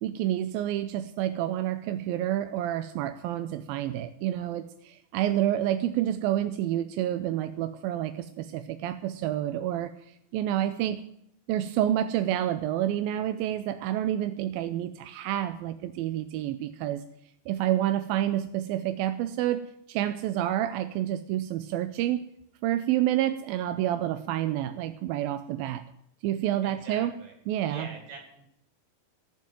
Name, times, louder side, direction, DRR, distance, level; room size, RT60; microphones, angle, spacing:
voice 1, 0.0-9.9 10.3-11.0 11.5-17.0 17.5-22.3 22.6-25.8 26.2-27.2 27.5-27.9, right 12 dB, 90° right, 10 dB, 2.5 m, -29 dB
voice 2, 26.6-27.3 27.6-28.4, right 3 dB, 65° right, 3 dB, 5.0 m, -44 dB
17.0 x 7.6 x 9.1 m, 0.76 s
omnidirectional pair, 4.1 m